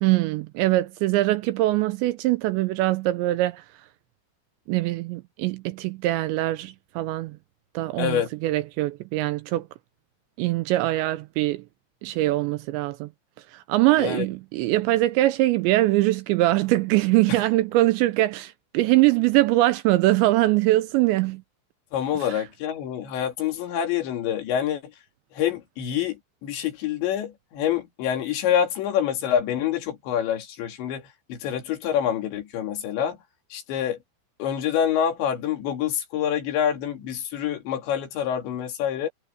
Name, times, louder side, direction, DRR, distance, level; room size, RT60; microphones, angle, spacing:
voice 1, 0.0-3.6 4.7-7.4 7.7-9.7 10.4-11.6 12.0-13.1 13.5-21.4, right 17 dB, 80° right, 2.7 m, -22 dB
voice 2, 8.0-8.3 14.0-14.3 21.9-24.8 25.3-33.2 33.5-34.0 34.4-39.1, left 9 dB, 70° left, 4.6 m, -26 dB
omnidirectional pair, 5.5 m